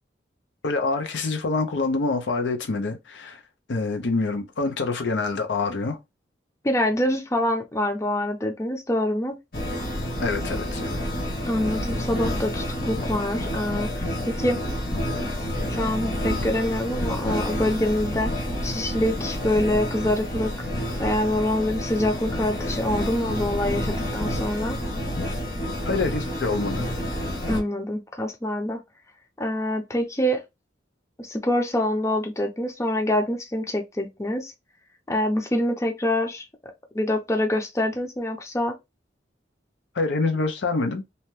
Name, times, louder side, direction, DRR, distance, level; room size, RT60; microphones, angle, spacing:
voice 1, 0.6-3.4 3.7-6.0 10.2-10.8 25.9-26.9 39.9-41.0, left 3 dB, 85° left, 0.6 m, -26 dB
voice 2, 6.6-9.4 11.5-14.6 15.7-20.7 21.0-24.8 27.5-28.8 29.4-30.4 31.2-34.5 35.1-36.5 36.9-38.8, left 1 dB, 15° left, 0.5 m, -25 dB
sound 1, 9.5-27.6, equal, 55° left, 1.2 m, -29 dB
2.8 x 2.1 x 3.1 m
head